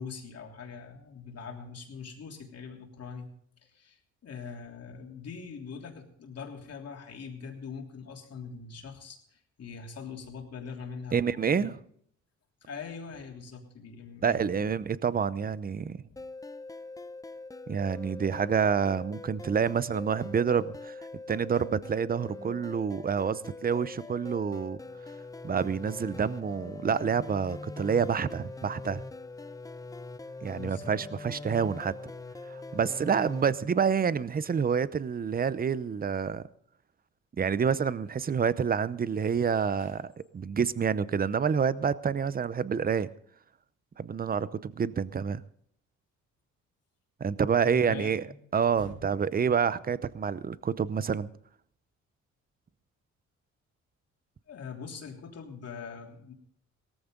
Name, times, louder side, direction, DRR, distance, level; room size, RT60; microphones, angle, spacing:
voice 1, 0.0-3.3 3.6-11.7 12.6-14.4 16.1-16.2 30.5-30.9 39.8-39.9 47.6-48.4 48.8-48.9 54.5-56.3, left 5 dB, 55° left, 3.2 m, -42 dB
voice 2, 11.1-11.8 14.2-16.0 17.7-24.8 25.4-29.0 30.4-31.9 32.5-36.4 37.4-40.1 40.3-43.1 44.0-45.4 47.2-48.2 48.5-51.3, right 6 dB, 30° right, 0.7 m, -28 dB
sound 1, 16.2-33.4, left 3 dB, 10° left, 0.6 m, -43 dB
17.5 x 14.0 x 3.8 m
cardioid pair, 90°, 30 cm